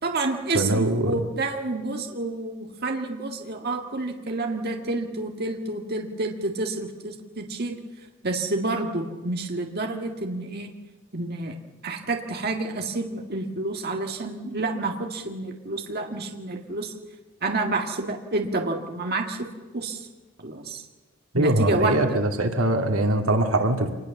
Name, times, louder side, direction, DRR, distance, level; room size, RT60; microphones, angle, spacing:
voice 1, 0.0-7.7 8.2-10.7 11.1-11.6 11.8-16.9 17.4-19.5 19.7-20.1 20.4-20.8 21.3-22.2, right 2 dB, 50° right, 2 dB, 2.0 m, -29 dB
voice 2, 0.5-1.2 21.3-23.9, right 1 dB, 80° right, 5 dB, 2.2 m, -22 dB
25.5 x 20.5 x 7.2 m, 1.2 s
head